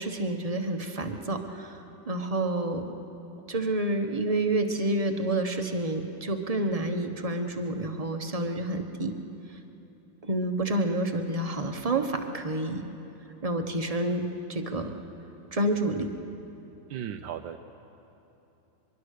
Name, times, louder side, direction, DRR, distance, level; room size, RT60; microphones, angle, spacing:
voice 1, 0.0-2.9 3.5-9.1 10.2-12.8 13.4-14.9 15.5-16.1, right 1 dB, 25° right, 5 dB, 1.0 m, -29 dB
voice 2, 16.9-17.6, right 9 dB, 80° right, 6 dB, 1.4 m, -36 dB
23.5 x 22.5 x 6.6 m, 3.0 s
omnidirectional pair, 2.1 m